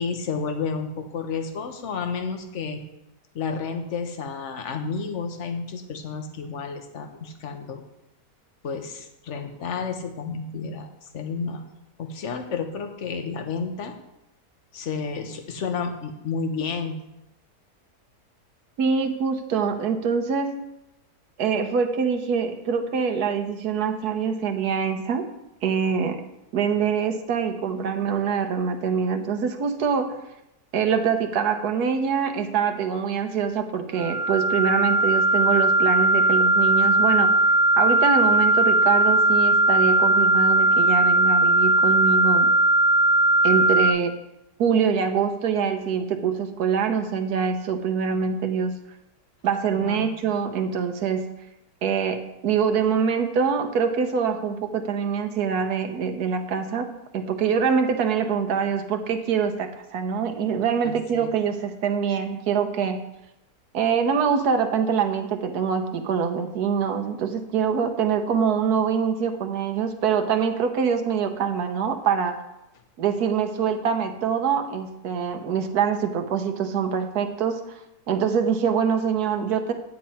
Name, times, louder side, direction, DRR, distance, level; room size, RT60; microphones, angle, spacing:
voice 1, 0.0-2.8 3.3-7.8 8.6-11.7 12.0-13.9 14.7-17.0 49.7-50.1 60.8-61.3, left 5 dB, 50° left, 6 dB, 1.2 m, -31 dB
voice 2, 18.8-20.5 21.4-25.3 25.6-26.2 26.5-30.2 30.7-42.5 43.4-44.2 44.6-48.8 49.4-51.3 51.8-63.1 63.7-72.4 73.0-79.7, right 6 dB, 65° right, 6 dB, 1.4 m, -24 dB
sound 1, 34.0-43.9, right 2 dB, 25° right, 1.1 m, -19 dB
10.5 x 9.3 x 4.3 m, 0.90 s
omnidirectional pair, 1.8 m